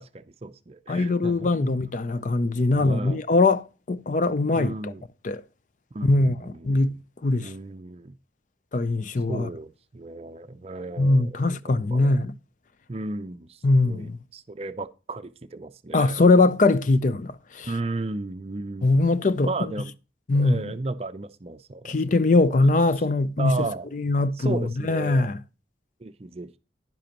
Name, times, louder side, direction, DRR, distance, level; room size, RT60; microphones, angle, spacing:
voice 1, 0.0-1.7 2.7-3.2 4.5-5.0 5.9-6.9 7.4-8.2 9.3-11.6 11.9-12.2 12.9-16.2 17.6-19.0 19.4-19.9 20.3-22.4 23.4-23.9 24.4-25.3 26.0-26.6, right 2 dB, 35° right, 0.5 m, -34 dB
voice 2, 0.9-4.9 5.2-5.4 6.0-6.3 6.6-7.0 7.2-7.5 8.7-9.5 11.0-12.3 13.6-14.2 15.9-17.7 18.8-19.5 20.3-20.7 21.8-23.7 23.9-25.4, left 2 dB, 45° left, 0.5 m, -21 dB
11.0 x 10.0 x 2.9 m
head